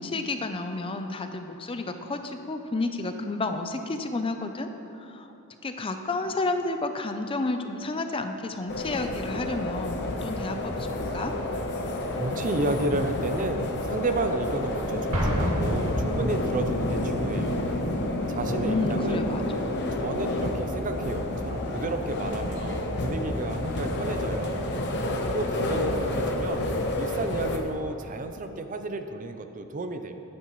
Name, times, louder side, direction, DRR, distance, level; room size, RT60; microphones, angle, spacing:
voice 1, 0.0-4.7 5.0-5.3 5.6-11.3 18.6-19.4, left 2 dB, 25° left, 7 dB, 0.5 m, -31 dB
sound 1, 8.7-27.6, left 1 dB, 55° left, 0.9 m, -29 dB
voice 2, 12.2-17.6 18.3-19.3 19.9-24.7 25.3-30.1, right 2 dB, 35° right, 7 dB, 0.6 m, -32 dB
Explosion, 15.1-16.9, equal, 85° right, 1.9 m, -28 dB
15.0 x 9.6 x 3.1 m, 2.8 s
head